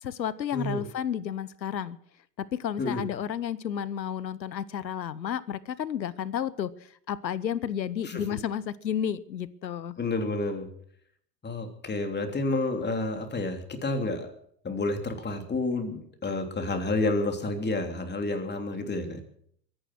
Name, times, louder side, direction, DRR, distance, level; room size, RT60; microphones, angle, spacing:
voice 1, 0.0-2.0 2.4-6.7 7.1-10.0, left 9 dB, 85° left, 19 dB, 1.0 m, -32 dB
voice 2, 0.5-0.8 2.8-3.0 8.0-8.2 10.0-10.7 11.4-14.3 14.6-19.2, left 2 dB, 20° left, 5 dB, 3.3 m, -30 dB
22.5 x 10.0 x 6.2 m, 0.64 s
figure-of-eight pair, 80°, 50 cm